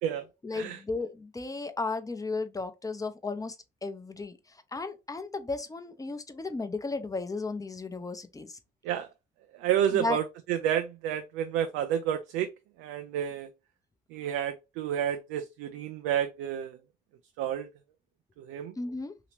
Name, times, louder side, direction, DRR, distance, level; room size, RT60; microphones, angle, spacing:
voice 1, 0.4-3.6 3.8-4.4 4.7-8.6 9.9-10.2 18.8-19.1, left 3 dB, 20° left, 0.7 m, -34 dB
voice 2, 9.6-12.5 12.8-13.5 14.1-16.8 17.4-17.7 18.4-18.7, right 10 dB, 80° right, 0.4 m, -30 dB
2.9 x 2.8 x 3.3 m
hypercardioid pair, 55°, 19 cm